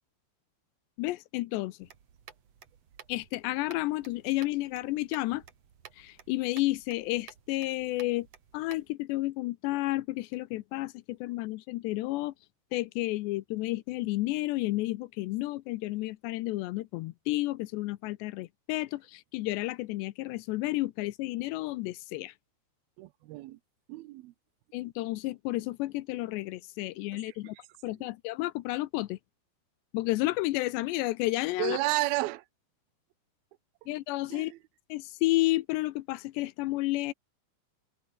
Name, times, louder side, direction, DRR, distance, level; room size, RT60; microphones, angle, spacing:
voice 1, 1.0-1.9 3.1-5.4 6.0-8.3 8.5-12.3 12.7-22.3 24.7-27.6 27.8-29.2 29.9-31.8 33.9-34.5 34.9-37.1, left 18 dB, 80° left, 2.9 m, -31 dB
sound 1, 1.8-8.9, right 8 dB, 45° right, 2.7 m, -54 dB
voice 2, 23.0-23.6 23.9-24.3 27.3-27.4 28.0-28.1 31.6-32.5 33.8-33.9 34.3-34.6, right 19 dB, 75° right, 2.4 m, -32 dB
open air
omnidirectional pair, 5.1 m